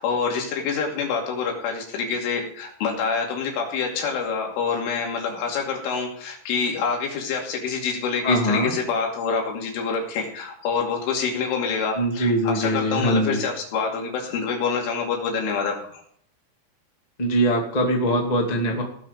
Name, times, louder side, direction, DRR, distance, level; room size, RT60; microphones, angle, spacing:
voice 1, 0.0-16.0, left 5 dB, 90° left, 0 dB, 5.1 m, -26 dB
voice 2, 8.2-8.7 11.9-13.4 17.2-18.8, equal, 25° left, 0 dB, 0.8 m, -22 dB
17.5 x 6.8 x 5.2 m, 0.62 s
omnidirectional pair, 5.5 m